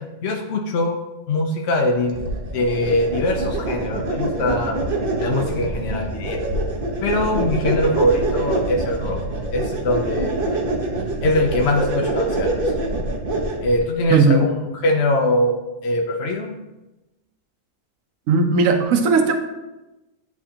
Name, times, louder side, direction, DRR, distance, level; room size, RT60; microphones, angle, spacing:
voice 1, 0.2-1.0 1.3-2.2 2.5-4.8 5.2-6.4 7.0-9.2 9.5-10.4 11.2-12.5 13.6-14.5 14.8-15.6 15.8-16.5, left 1 dB, 60° left, 1 dB, 0.8 m, -22 dB
sound 1, 2.1-13.8, right 2 dB, 45° right, 0.9 m, -25 dB
voice 2, 18.3-19.3, right 4 dB, 70° right, 5 dB, 1.1 m, -16 dB
9.9 x 3.5 x 2.8 m, 1.0 s
omnidirectional pair, 1.4 m